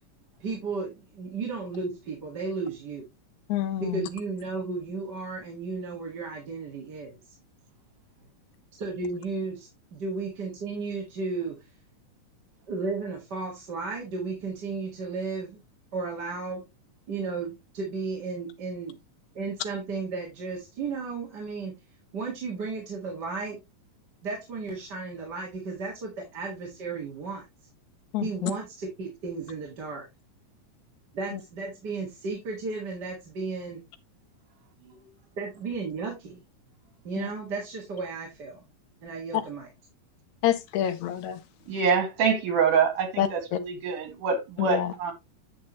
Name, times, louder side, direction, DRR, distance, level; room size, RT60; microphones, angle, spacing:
voice 1, 0.4-3.1 3.8-7.1 8.8-11.7 12.7-15.6 15.9-16.6 17.1-19.0 19.3-21.8 22.1-23.6 24.2-27.4 28.2-30.1 31.1-33.8 35.4-36.4 37.0-38.6 39.0-39.7, right 4 dB, 40° right, 2.1 m, -34 dB
voice 2, 3.5-4.1 28.1-28.5 31.3-31.4 37.2-37.3 40.4-41.4 43.2-43.6 44.6-44.9, left 11 dB, 75° left, 1.9 m, -27 dB
voice 3, 41.7-45.1, right 6 dB, 80° right, 3.5 m, -25 dB
9.1 x 6.3 x 3.0 m
omnidirectional pair, 3.6 m